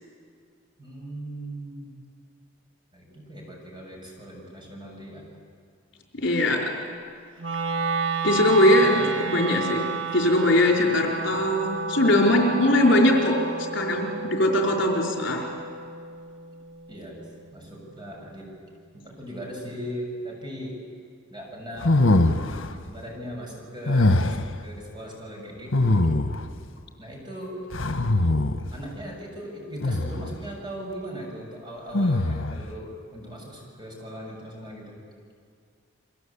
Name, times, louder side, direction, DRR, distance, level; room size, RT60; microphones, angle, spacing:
voice 1, 0.8-1.9 2.9-5.2 8.8-9.1 16.9-18.5 18.9-20.8 21.3-26.1 27.0-27.6 28.7-35.0, equal, 20° right, -1 dB, 6.9 m, -39 dB
voice 2, 6.1-6.7 8.2-9.0 9.3-13.4 13.7-15.5, left 1 dB, 65° left, 0 dB, 4.5 m, -21 dB
Wind instrument woodwind instrument, 7.4-17.6, right 4 dB, 70° right, 1.6 m, -31 dB
sound 1, 21.8-22.8 23.9-24.6 25.7-26.5 27.7-28.7 29.8-30.4 31.9-32.7, left 2 dB, 80° left, 1.4 m, -22 dB
29.5 x 23.0 x 8.6 m, 2.1 s
head